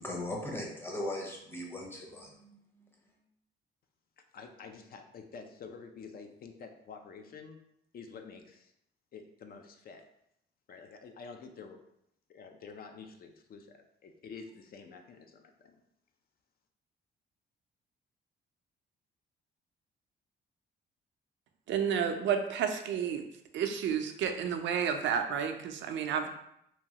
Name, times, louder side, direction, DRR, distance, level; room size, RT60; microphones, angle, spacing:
voice 1, 0.0-2.9, left 1 dB, 10° left, -1 dB, 0.7 m, -39 dB
voice 2, 4.3-7.6 7.9-8.7 9.1-10.0 10.7-11.8 12.3-15.8, left 5 dB, 50° left, 5 dB, 0.4 m, -48 dB
voice 3, 21.7-23.2 23.5-26.3, right 7 dB, 70° right, 6 dB, 0.4 m, -31 dB
2.9 x 2.3 x 2.8 m, 0.77 s
cardioid pair, 90°, 20 cm